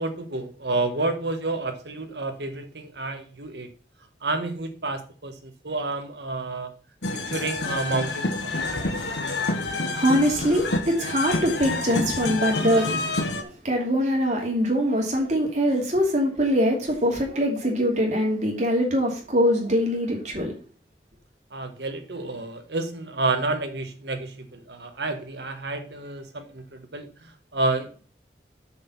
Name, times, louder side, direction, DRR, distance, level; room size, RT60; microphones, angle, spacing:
voice 1, 0.0-3.7 4.2-6.7 7.3-8.7 21.5-27.1 27.5-27.9, right 2 dB, 70° right, 6 dB, 1.4 m, -29 dB
sound 1, 7.0-13.4, left 2 dB, 80° left, 1.3 m, -28 dB
voice 2, 9.9-13.0 13.4-20.5, equal, 45° right, 0 dB, 2.7 m, -23 dB
6.4 x 5.7 x 6.0 m, 0.40 s
head